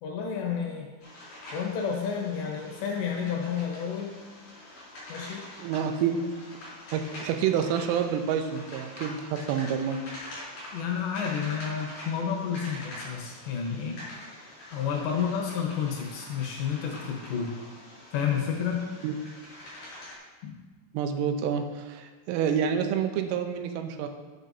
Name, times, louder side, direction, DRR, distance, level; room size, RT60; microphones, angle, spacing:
voice 1, 0.0-0.9 1.5-4.1 5.1-5.5 10.7-14.0 14.7-17.5 18.1-18.9 20.4-20.5, left 7 dB, 70° left, 0 dB, 3.0 m, -30 dB
sound 1, 1.0-20.2, left 1 dB, 45° left, 4.7 m, -45 dB
voice 2, 5.6-6.5 6.9-10.0 19.0-19.1 20.9-24.1, right 7 dB, 90° right, 6 dB, 3.3 m, -28 dB
14.0 x 7.7 x 2.7 m, 1.3 s
omnidirectional pair, 5.8 m